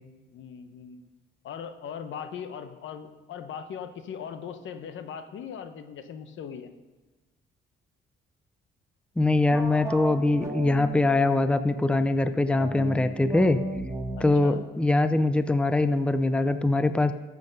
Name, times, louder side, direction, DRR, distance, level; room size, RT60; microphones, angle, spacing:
voice 1, 0.3-1.0 1.4-6.7 14.2-14.6, left 7 dB, 75° left, 9 dB, 1.1 m, -39 dB
voice 2, 9.2-13.6 14.2-17.1, left 2 dB, 5° left, 11 dB, 0.6 m, -23 dB
sound 1, 9.5-11.8 12.5-15.9, right 2 dB, 15° right, 1.9 m, -36 dB
14.0 x 8.0 x 5.4 m, 1.2 s
cardioid pair, 90°, 20 cm